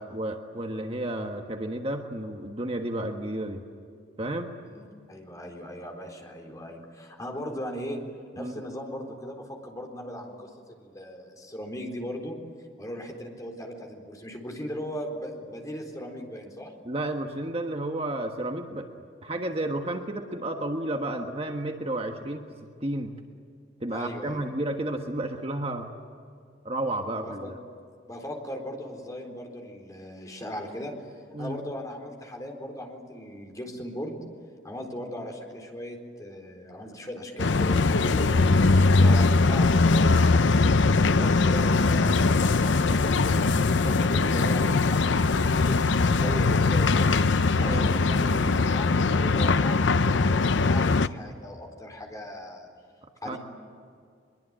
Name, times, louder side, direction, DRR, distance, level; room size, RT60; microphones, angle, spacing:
voice 1, 0.0-3.6 4.2-4.5 8.4-8.6 16.8-18.9 19.2-23.2 23.8-26.0 26.6-27.6 31.3-31.6 47.6-47.9 53.2-53.4, right 1 dB, 30° right, 4 dB, 1.5 m, -32 dB
voice 2, 4.6-8.0 8.3-10.5 10.8-12.4 12.8-16.7 23.9-24.4 27.2-27.5 28.1-30.9 31.4-34.2 34.6-40.5 41.1-47.2 47.6-52.7 53.2-53.4, equal, 20° left, 2 dB, 4.1 m, -38 dB
sound 1, 37.4-51.1, left 3 dB, 75° left, 0.7 m, -21 dB
23.5 x 23.0 x 8.9 m, 2.3 s
head